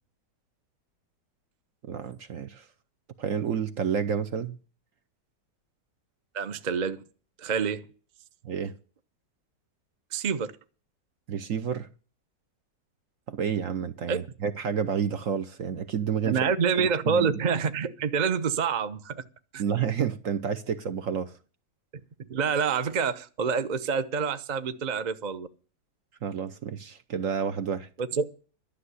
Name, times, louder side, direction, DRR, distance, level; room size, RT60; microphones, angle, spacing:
voice 1, 1.9-2.7 3.2-4.6 8.4-8.7 11.3-11.9 13.3-16.4 16.7-17.3 19.6-21.3 26.2-27.9, right 7 dB, 55° right, 1.0 m, -30 dB
voice 2, 6.3-7.0 7.4-7.9 10.1-10.5 14.1-14.2 16.2-19.2 19.5-19.6 22.3-25.5 28.0-28.3, right 6 dB, 40° right, 0.6 m, -27 dB
12.0 x 6.5 x 9.7 m
omnidirectional pair, 1.9 m